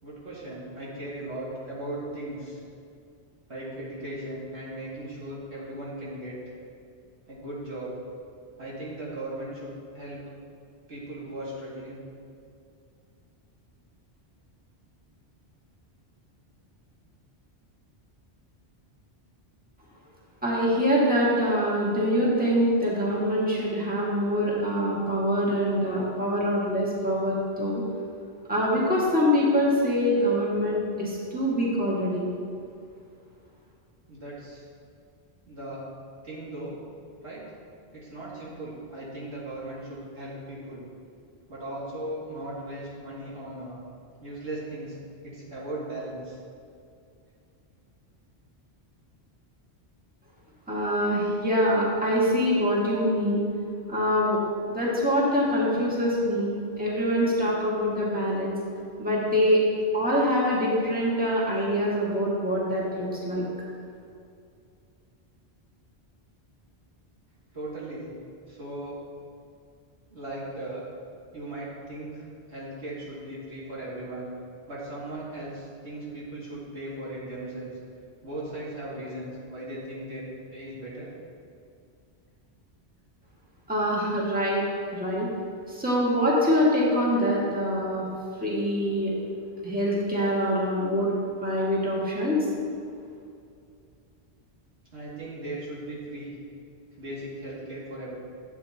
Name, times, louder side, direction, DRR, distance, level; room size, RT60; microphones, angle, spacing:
voice 1, 0.0-2.6 3.5-6.6 7.3-7.9 8.6-10.2 10.9-12.0 34.1-34.6 35.5-35.8 36.2-36.8 37.2-37.4 37.9-40.9 41.5-43.8 44.2-45.0 45.2-46.4 67.5-68.1 68.5-69.0 70.1-70.8 71.3-74.3 74.7-77.7 78.2-81.1 94.9-96.3 96.9-98.2, right 1 dB, 85° right, -7 dB, 2.7 m, -37 dB
voice 2, 20.4-27.8 28.5-32.2 50.7-53.4 53.9-54.4 54.7-58.6 59.0-59.6 59.9-63.4 83.7-84.6 84.9-85.3 85.7-88.0 88.4-89.1 89.6-91.1 91.4-92.4, equal, 10° right, -6 dB, 1.8 m, -24 dB
12.0 x 8.2 x 2.9 m, 2.4 s
omnidirectional pair, 1.1 m